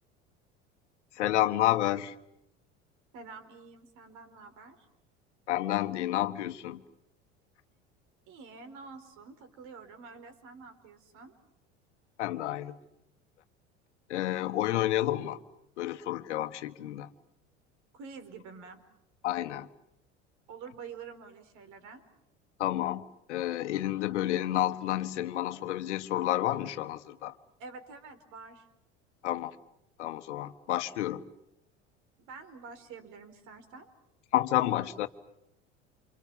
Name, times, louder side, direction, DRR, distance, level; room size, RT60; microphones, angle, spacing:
voice 1, 1.1-2.1 5.5-6.8 12.2-12.8 14.1-15.4 15.8-17.1 19.2-19.7 22.6-23.0 23.3-27.3 29.2-29.5 30.0-31.2 34.3-35.1, left 14 dB, 75° left, 1.5 m, -30 dB
voice 2, 3.1-4.9 8.3-11.3 17.9-18.8 20.5-22.0 27.6-28.7 32.2-33.9, right 5 dB, 55° right, 4.6 m, -47 dB
28.5 x 27.5 x 7.2 m
hypercardioid pair, 75°, 36 cm